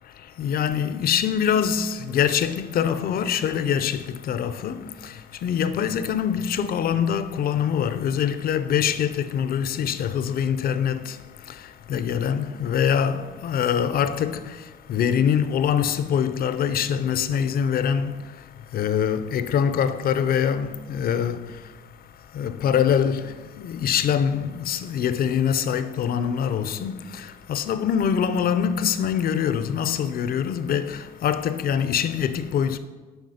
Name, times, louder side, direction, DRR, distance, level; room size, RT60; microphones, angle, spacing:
voice 1, 0.0-32.8, left 8 dB, 55° left, 0.5 m, -24 dB
7.9 x 5.0 x 5.0 m
cardioid pair, 105°, 19 cm